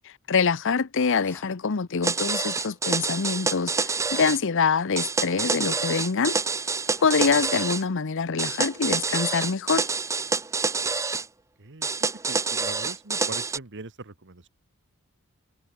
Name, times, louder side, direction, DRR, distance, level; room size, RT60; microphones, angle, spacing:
voice 1, 0.3-6.4 7.0-9.9, left 5 dB, 60° left, 0.8 m, -25 dB
sound 1, 1.0-1.6 6.8-7.8, left 1 dB, 10° left, 7.7 m, -47 dB
sound 2, 2.0-4.4 5.0-7.8 8.4-11.3 11.8-13.6, right 4 dB, 15° right, 0.5 m, -27 dB
voice 2, 12.3-14.5, right 3 dB, 55° right, 1.5 m, -41 dB
head